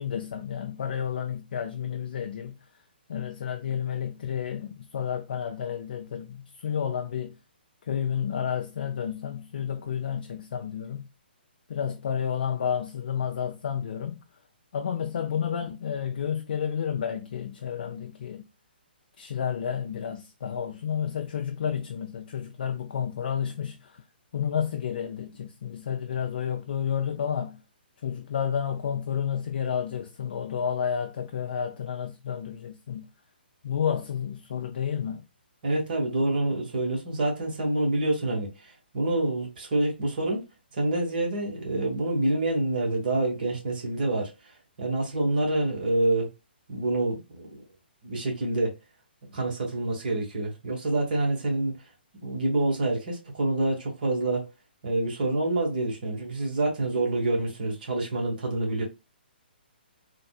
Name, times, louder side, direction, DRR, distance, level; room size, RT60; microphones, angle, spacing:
voice 1, 0.0-2.6 3.1-7.4 7.9-11.0 11.7-14.2 14.7-18.4 19.2-24.0 24.3-27.6 28.0-33.1 33.6-35.2, left 8 dB, 60° left, 0.4 m, -31 dB
voice 2, 35.6-40.4 40.7-44.3 44.8-46.3 46.7-47.6 48.0-48.7 49.3-51.8 52.2-54.5 54.8-58.8, right 2 dB, 55° right, 1.4 m, -27 dB
3.5 x 2.3 x 2.3 m
figure-of-eight pair, 135°, 6 cm